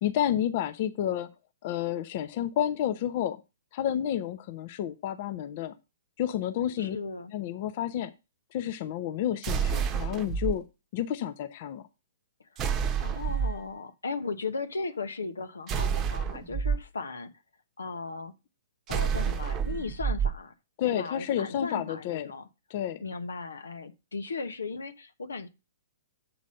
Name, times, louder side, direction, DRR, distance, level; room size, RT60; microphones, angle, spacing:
voice 1, 0.0-1.3 1.6-3.4 3.7-5.7 6.2-7.0 7.3-8.1 8.5-10.6 10.9-11.8 20.8-22.3 22.7-23.0, left 10 dB, 45° left, 0.7 m, -30 dB
voice 2, 6.8-7.3 12.5-12.7 13.0-17.3 17.8-18.3 18.9-20.5 20.8-22.5 23.0-25.5, left 4 dB, 85° left, 0.9 m, -37 dB
sound 1, 9.4-10.5 12.6-13.6 15.7-16.8 18.9-20.3, right 7 dB, 25° right, 0.9 m, -28 dB
7.8 x 4.1 x 6.3 m
hypercardioid pair, 125°, 0 cm